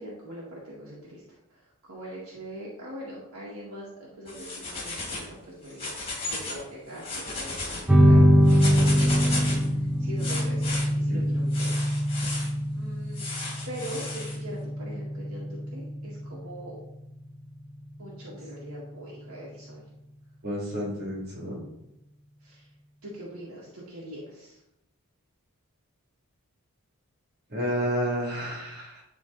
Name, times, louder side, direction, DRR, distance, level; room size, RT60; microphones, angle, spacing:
voice 1, 0.0-6.0 6.2-12.4 12.7-13.3 13.7-16.8 18.0-19.8 22.4-22.7 23.0-24.6 28.5-28.6, right 1 dB, 70° right, -6 dB, 1.9 m, -42 dB
sound 1, 4.3-5.3 5.7-6.6 6.9-7.8 8.4-9.7 10.2-10.9 11.5-12.5 13.1-14.4, left 2 dB, 25° left, 2.0 m, -34 dB
sound 2, 7.9-18.9, equal, 5° right, 0.7 m, -24 dB
voice 2, 20.4-21.6 27.5-29.0, equal, 45° right, -4 dB, 2.8 m, -30 dB
10.5 x 3.7 x 4.0 m, 0.84 s
head